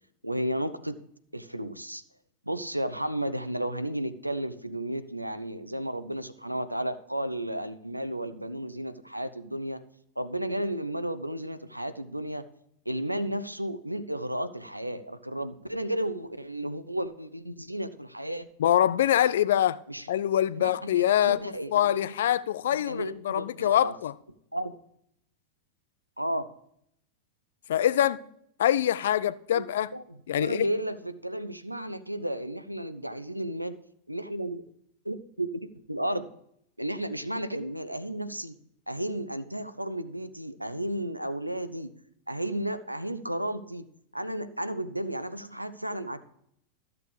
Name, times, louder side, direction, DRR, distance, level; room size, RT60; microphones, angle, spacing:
voice 1, 0.2-1.0 1.3-2.0 2.5-9.8 10.2-12.4 12.9-18.5 19.9-20.1 20.6-22.0 22.8-23.9 24.5-24.7 26.2-26.4 29.5-29.6 29.9-33.8 34.1-34.6 35.0-36.3 36.8-38.6 38.9-41.9 42.3-46.2, right 1 dB, 85° right, 0.5 m, -33 dB
voice 2, 18.6-19.8 20.1-21.4 21.7-24.1 27.7-28.2 28.6-29.9 30.3-30.6, left 11 dB, 60° left, 0.4 m, -24 dB
13.0 x 6.8 x 3.3 m
figure-of-eight pair, 90°, 0 cm